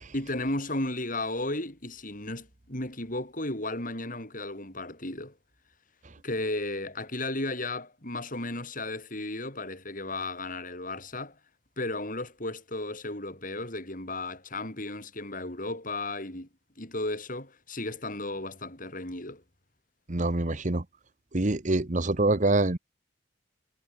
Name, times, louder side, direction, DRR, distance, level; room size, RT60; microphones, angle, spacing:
voice 1, 0.1-5.4 6.2-11.4 11.8-16.5 16.8-19.4, left 2 dB, 45° left, 7.5 m, -34 dB
voice 2, 20.1-20.8 21.3-22.8, right 2 dB, 40° right, 1.2 m, -25 dB
head